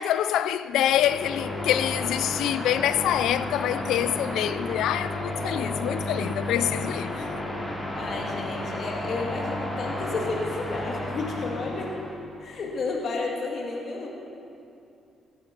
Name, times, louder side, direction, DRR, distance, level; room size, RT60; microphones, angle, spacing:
voice 1, 0.0-7.2, left 11 dB, 85° left, 0.5 m, -26 dB
sound 1, 0.7-12.2, left 1 dB, 25° left, 3.5 m, -32 dB
voice 2, 7.9-12.0 12.4-14.1, left 3 dB, 60° left, 1.9 m, -32 dB
16.0 x 11.0 x 6.0 m
cardioid pair, 90°, 0 cm